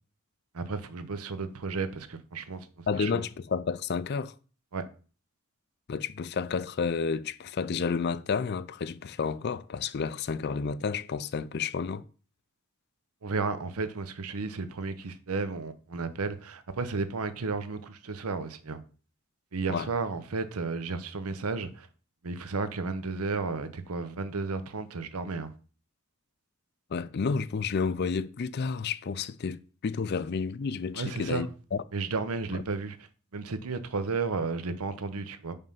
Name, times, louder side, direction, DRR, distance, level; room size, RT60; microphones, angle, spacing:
voice 1, 0.5-2.7 2.9-3.2 4.7-4.8 13.2-18.8 19.5-21.9 22.2-25.5 30.9-31.4 31.9-33.0 33.3-35.5, right 4 dB, 80° right, 0.7 m, -33 dB
voice 2, 2.9-4.3 5.9-12.0 19.7-19.9 26.9-31.8 32.5-32.6, left 5 dB, 45° left, 0.4 m, -31 dB
5.3 x 5.3 x 5.5 m
head